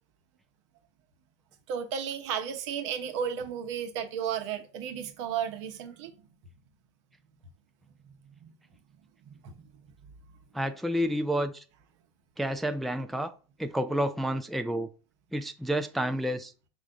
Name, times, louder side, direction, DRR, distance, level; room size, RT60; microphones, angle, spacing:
voice 1, 1.7-6.2 8.0-8.5 9.2-9.5, right 8 dB, 65° right, 0.9 m, -34 dB
voice 2, 10.5-11.6 12.4-13.3 13.6-14.9 15.3-16.5, equal, ahead, 0.3 m, -29 dB
4.9 x 2.2 x 3.8 m
hypercardioid pair, 95°, 16 cm